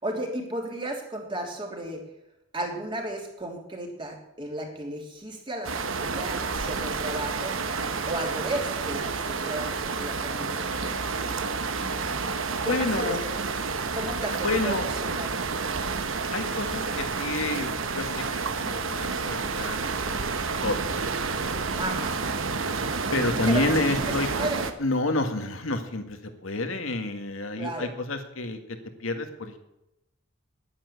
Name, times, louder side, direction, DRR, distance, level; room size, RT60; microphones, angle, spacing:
voice 1, 0.0-2.0 2.5-7.6 8.1-10.7 12.6-13.4 13.9-15.4 21.8-22.2 23.5-24.6 27.6-27.9, right 1 dB, 25° right, 1 dB, 3.0 m, -34 dB
sound 1, 5.6-24.7, right 4 dB, 75° right, 1.1 m, -30 dB
voice 2, 12.6-13.2 14.4-14.9 16.3-20.8 23.1-24.3 24.8-29.6, left 2 dB, 85° left, 6 dB, 1.9 m, -29 dB
10.5 x 10.0 x 8.1 m, 0.88 s
head